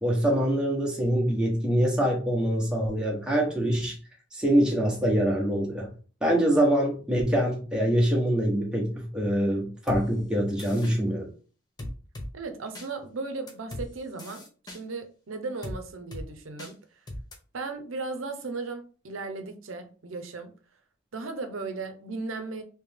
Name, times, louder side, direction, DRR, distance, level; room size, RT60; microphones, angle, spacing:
voice 1, 0.0-3.9 4.3-5.9 6.2-11.3, equal, 5° right, -3 dB, 0.9 m, -24 dB
sound 1, 9.9-10.0 10.6-11.0 11.8-12.3 12.8-12.9 13.5-13.9 14.2-14.8 15.6-15.8 16.1-16.3 16.6-16.7 17.1-17.4, left 1 dB, 20° left, 0.6 m, -37 dB
voice 2, 12.3-16.8 17.5-20.5 21.1-22.6, right 3 dB, 90° right, 6 dB, 0.7 m, -36 dB
3.3 x 2.9 x 3.5 m, 0.39 s
head